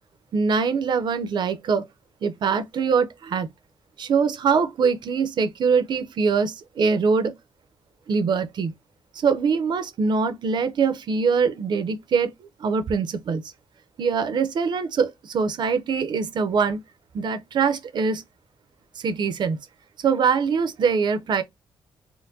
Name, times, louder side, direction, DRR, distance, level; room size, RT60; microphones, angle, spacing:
voice 1, 0.3-1.8 2.2-3.5 4.0-7.3 8.1-8.7 9.1-12.3 12.6-13.4 14.0-16.8 17.1-18.2 19.0-19.6 20.0-21.4, right 5 dB, 55° right, 0.6 m, -23 dB
4.4 x 2.1 x 2.6 m
wide cardioid pair, 150°, 9 cm